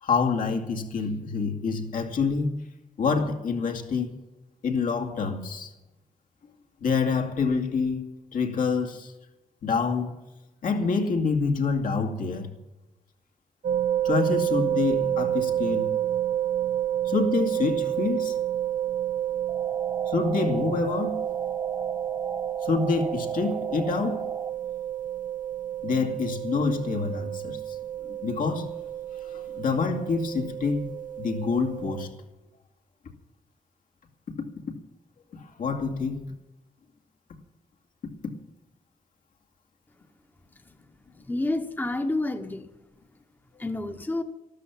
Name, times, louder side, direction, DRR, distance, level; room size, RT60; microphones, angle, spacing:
voice 1, 0.0-2.6 3.0-4.1 4.6-5.7 6.8-8.0 8.3-9.1 9.6-10.1 10.6-12.5 14.0-15.9 17.0-18.3 20.1-21.2 22.6-24.3 25.8-27.6 28.0-28.7 29.2-32.1 35.3-36.3, left 4 dB, 85° left, 2 dB, 2.3 m, -27 dB
sound 1, 13.6-32.1, right 11 dB, 75° right, 0.6 m, -29 dB
sound 2, 19.5-24.5, right 2 dB, 20° right, 0.6 m, -38 dB
voice 2, 41.2-42.7 43.6-44.2, left 2 dB, 15° left, 7 dB, 1.0 m, -29 dB
13.0 x 13.0 x 7.5 m, 0.99 s
wide cardioid pair, 135°, 14 cm